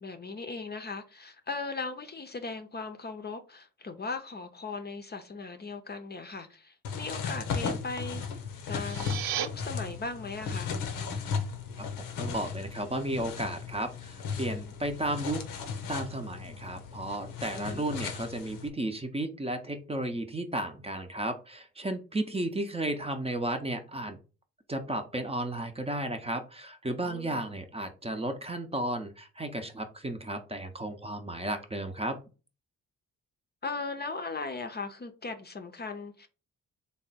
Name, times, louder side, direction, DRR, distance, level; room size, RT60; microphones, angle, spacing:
voice 1, 0.0-8.2 8.7-10.7 17.6-17.9 27.0-27.4 33.6-36.3, left 3 dB, 30° left, 0.6 m, -38 dB
sound 1, 6.8-18.7, left 5 dB, 85° left, 0.7 m, -36 dB
sound 2, 8.6-9.5, right 10 dB, 90° right, 0.5 m, -34 dB
voice 2, 12.2-15.4 15.9-24.2 24.7-32.2, right 1 dB, 20° right, 0.6 m, -33 dB
3.5 x 2.1 x 4.1 m
supercardioid pair, 55°, 33 cm